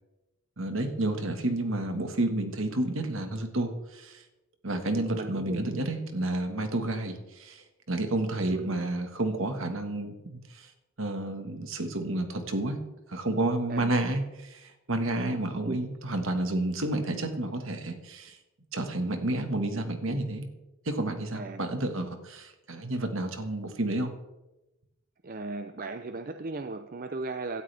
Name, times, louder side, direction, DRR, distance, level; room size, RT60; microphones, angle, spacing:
voice 1, 0.6-4.2 4.6-10.7 11.0-12.8 13.1-18.4 18.7-20.5 20.8-24.1, right 1 dB, 60° right, 6 dB, 1.6 m, -30 dB
voice 2, 4.9-5.6 8.5-8.7 13.7-14.0 15.1-15.3 15.7-15.8 20.0-20.2 21.3-21.7 25.2-27.6, right 3 dB, 40° right, 8 dB, 0.6 m, -37 dB
17.5 x 12.5 x 3.5 m, 1.0 s
head